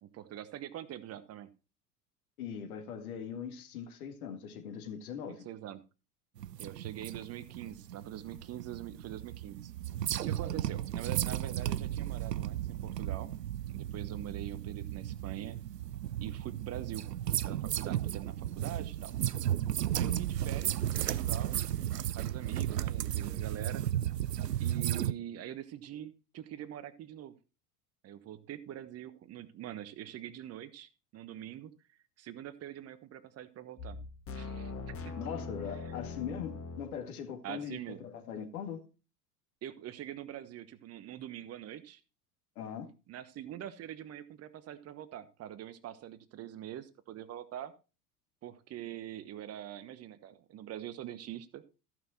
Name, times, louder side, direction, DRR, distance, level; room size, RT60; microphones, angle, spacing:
voice 1, 0.0-1.5 5.3-5.8 6.6-9.7 10.3-13.3 13.7-15.6 16.2-17.1 17.4-19.1 19.9-21.6 22.1-23.8 24.6-27.4 28.0-31.7 32.2-34.0 34.3-35.1 37.4-38.0 39.6-42.0 43.1-47.7 48.4-51.6, right 11 dB, 30° right, 1.1 m, -44 dB
voice 2, 2.4-5.5 35.2-38.8 42.6-42.9, left 7 dB, 65° left, 2.0 m, -41 dB
sound 1, 6.4-25.1, right 11 dB, 80° right, 0.6 m, -34 dB
sound 2, 33.8-37.0, left 4 dB, 30° left, 1.8 m, -41 dB
14.0 x 6.0 x 4.4 m
figure-of-eight pair, 75°, 47 cm